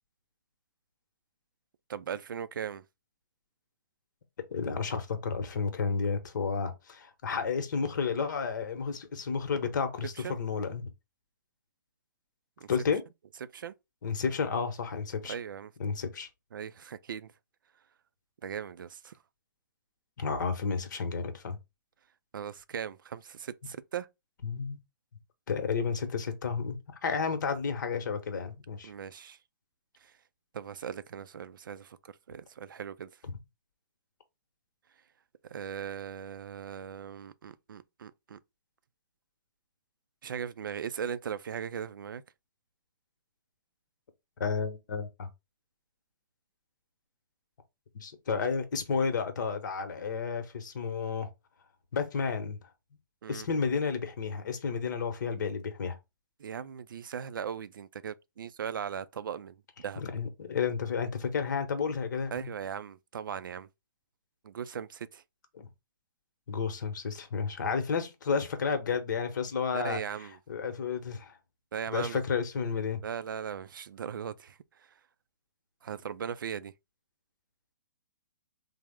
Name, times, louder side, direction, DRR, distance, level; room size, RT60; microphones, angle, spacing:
voice 1, 1.9-2.8 10.2-10.4 12.6-12.7 13.5-13.7 15.2-15.7 16.5-17.3 18.4-19.1 22.3-24.1 28.8-29.4 30.0-30.1 30.5-33.1 35.5-38.4 40.2-42.2 53.2-53.5 56.4-60.0 62.3-63.7 64.4-65.2 69.7-70.4 71.7-72.2 73.0-74.6 75.8-76.7, right 8 dB, 85° right, 0.4 m, -38 dB
voice 2, 4.5-10.9 12.7-13.0 14.0-15.3 15.8-16.3 20.2-21.6 24.4-24.8 25.5-28.9 44.4-45.3 47.9-51.3 51.9-52.6 53.3-56.0 60.0-62.5 65.5-65.7 66.5-70.0 70.5-71.4 71.9-73.0, left 5 dB, 65° left, 0.9 m, -31 dB
3.3 x 2.0 x 3.4 m
hypercardioid pair, 150°, 11 cm